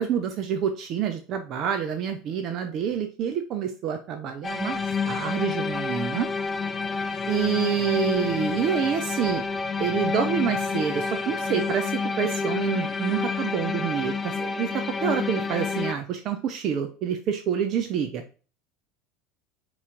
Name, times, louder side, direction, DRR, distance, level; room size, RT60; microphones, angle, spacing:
voice 1, 0.0-6.3 7.3-9.4 9.8-11.9 12.2-18.2, right 8 dB, 50° right, 6 dB, 0.5 m, -27 dB
sound 1, 4.4-15.9, left 5 dB, 25° left, 0.3 m, -29 dB
4.2 x 3.0 x 3.7 m, 0.36 s
hypercardioid pair, 75°, 0 cm